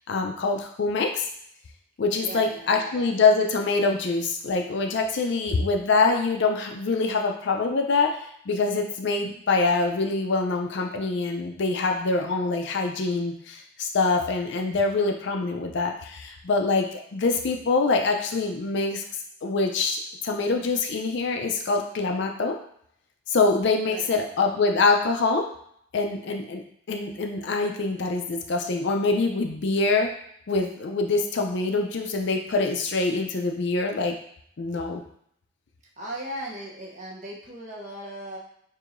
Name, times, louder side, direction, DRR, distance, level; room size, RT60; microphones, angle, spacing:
voice 1, 0.1-1.3 2.0-19.0 19.4-22.5 23.3-25.4 25.9-30.1 30.5-34.2 34.6-35.0, left 3 dB, 55° left, 3 dB, 0.4 m, -25 dB
voice 2, 2.2-3.1 23.8-24.3 36.0-38.4, right 1 dB, 35° right, -3 dB, 0.8 m, -38 dB
4.6 x 2.7 x 2.5 m, 0.68 s
head